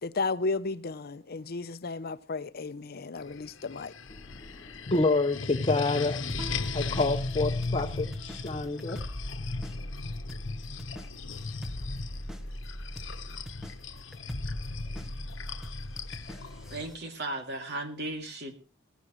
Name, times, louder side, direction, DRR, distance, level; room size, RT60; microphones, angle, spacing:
voice 1, 0.0-3.9, left 3 dB, 55° left, 0.7 m, -33 dB
sound 1, 3.2-16.9, left 3 dB, 80° left, 1.0 m, -37 dB
voice 2, 4.3-6.2 6.7-9.0, left 3 dB, 30° left, 1.0 m, -28 dB
sound 2, 6.3-17.0, equal, ahead, 1.1 m, -40 dB
Guitar, 6.4-9.6, right 3 dB, 20° right, 3.2 m, -50 dB
voice 3, 16.7-18.5, right 2 dB, 60° right, 2.5 m, -36 dB
18.5 x 15.0 x 3.1 m
head